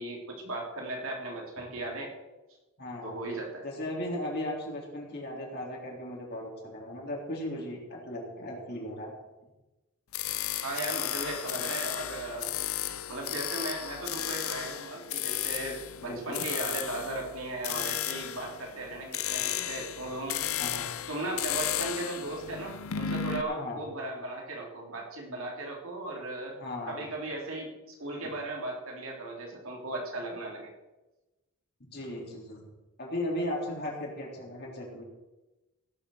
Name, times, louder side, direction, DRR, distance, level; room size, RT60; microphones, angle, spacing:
voice 1, 0.0-2.1 3.0-3.6 10.6-12.5 13.1-20.4 21.1-26.6 26.9-30.7, right 2 dB, 65° right, 0 dB, 3.5 m, -37 dB
voice 2, 2.8-3.2 3.6-9.1 16.1-16.4 20.6-20.9 23.4-23.8 26.5-27.0 31.8-32.7 33.0-35.0, left 1 dB, 50° left, -2 dB, 3.7 m, -36 dB
sound 1, 10.1-23.4, left 10 dB, 70° left, 0.7 m, -34 dB
17.0 x 6.9 x 6.5 m, 1.1 s
head